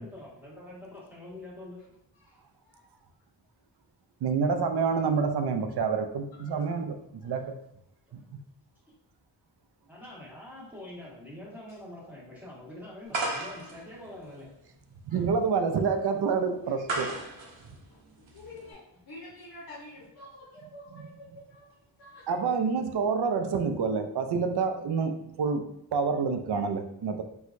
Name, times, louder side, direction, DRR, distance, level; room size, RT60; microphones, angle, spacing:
voice 1, 0.0-1.8 6.5-6.7 8.1-8.2 8.9-9.0 9.9-14.5, left 1 dB, 5° right, -6 dB, 1.4 m, -45 dB
voice 2, 2.2-2.9 6.3-6.6 7.2-7.5 15.1-15.2 16.7-17.1 17.3-17.5 17.9-22.7, left 2 dB, 55° left, -2 dB, 0.8 m, -49 dB
voice 3, 4.2-7.0 7.2-7.5 15.1-17.1 22.3-27.2, right 5 dB, 60° right, 7 dB, 0.5 m, -28 dB
sound 1, 13.1-18.7, right 2 dB, 80° right, 0.8 m, -37 dB
4.4 x 2.3 x 2.6 m, 0.77 s
cardioid pair, 55°, 45 cm